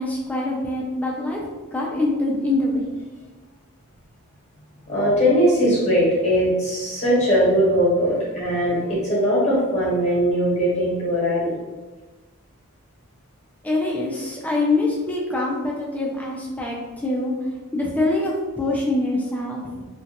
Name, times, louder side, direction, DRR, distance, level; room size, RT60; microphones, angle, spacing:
voice 1, 0.0-1.4 1.7-2.9 13.6-17.3 17.7-19.9, left 2 dB, 5° left, -3 dB, 0.3 m, -24 dB
voice 2, 4.9-11.5, equal, 30° left, -7 dB, 0.9 m, -20 dB
2.3 x 2.2 x 2.7 m, 1.3 s
head